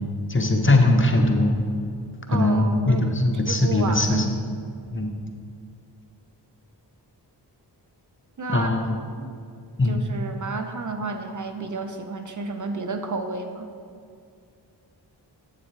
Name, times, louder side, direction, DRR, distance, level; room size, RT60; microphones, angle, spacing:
voice 1, 0.3-1.6 2.3-4.3 4.9-5.1 8.5-8.9 9.8-10.0, left 2 dB, 30° left, 3 dB, 1.0 m, -20 dB
voice 2, 2.3-3.1 3.5-4.3 8.4-8.7 9.1-9.3 9.8-13.7, right 4 dB, 45° right, 6 dB, 0.7 m, -31 dB
8.5 x 7.3 x 3.3 m, 2.3 s
cardioid pair, 40°, 43 cm